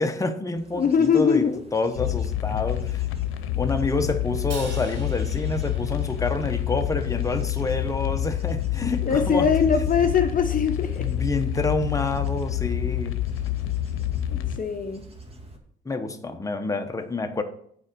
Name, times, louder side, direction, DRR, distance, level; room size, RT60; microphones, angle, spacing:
voice 1, 0.0-3.1 3.6-9.5 11.0-13.2 15.8-17.4, left 3 dB, 15° left, 5 dB, 1.1 m, -28 dB
Bird / Insect / Wind, 0.5-15.6, right 2 dB, 30° right, 1.9 m, -46 dB
voice 2, 0.7-1.6 9.0-11.1 14.3-15.1, left 6 dB, 45° left, 6 dB, 0.8 m, -22 dB
sound 1, 2.0-14.6, left 12 dB, 90° left, 0.7 m, -28 dB
Crash cymbal, 4.5-6.9, right 3 dB, 80° right, 4.4 m, -43 dB
8.6 x 4.9 x 6.3 m, 0.66 s
cardioid pair, 90°, 20 cm